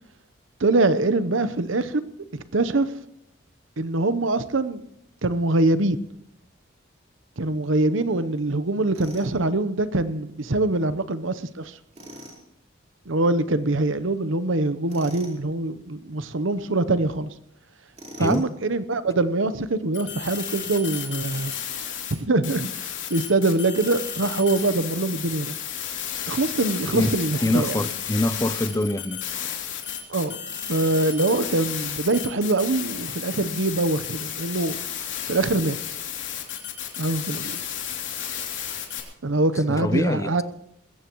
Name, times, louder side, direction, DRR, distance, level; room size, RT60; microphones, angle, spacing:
voice 1, 0.6-2.0 2.3-3.0 3.8-4.8 5.2-6.0 7.4-11.8 13.1-17.3 18.2-21.5 22.1-25.5 26.3-27.8 30.1-30.4 30.7-34.8 35.3-35.8 37.0-37.6 39.2-40.4, right 2 dB, 80° right, 0.9 m, -24 dB
Tools, 8.9-9.3 11.9-12.4 14.9-15.4 17.9-18.5, equal, 30° right, 4.4 m, -42 dB
voice 2, 18.2-18.5 26.8-29.2 39.7-40.4, left 1 dB, 15° left, 0.6 m, -25 dB
sound 1, 19.9-22.1 22.4-39.0, left 9 dB, 70° left, 2.9 m, -32 dB
20.5 x 16.5 x 3.1 m
head